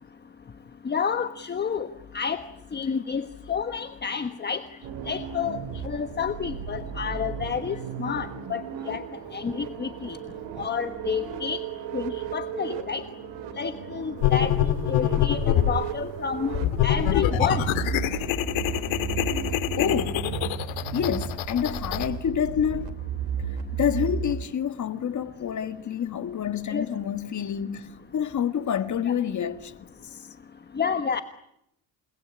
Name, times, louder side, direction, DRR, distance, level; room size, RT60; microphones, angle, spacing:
voice 1, 0.8-1.9 2.1-2.4 2.7-4.6 5.1-9.0 9.3-10.2 10.6-11.6 11.9-13.0 13.6-14.5 14.9-17.7 26.7-26.9 29.0-29.1 30.7-31.2, left 6 dB, 20° left, 1.3 m, -29 dB
sound 1, 4.8-24.3, right 8 dB, 65° right, 3.0 m, -34 dB
sound 2, 14.2-15.8 16.5-22.1, left 12 dB, 85° left, 2.3 m, -25 dB
voice 2, 19.8-20.2 20.9-22.9 23.8-30.3, left 8 dB, 40° left, 1.9 m, -28 dB
29.5 x 20.0 x 9.9 m
cardioid pair, 145°, 45 cm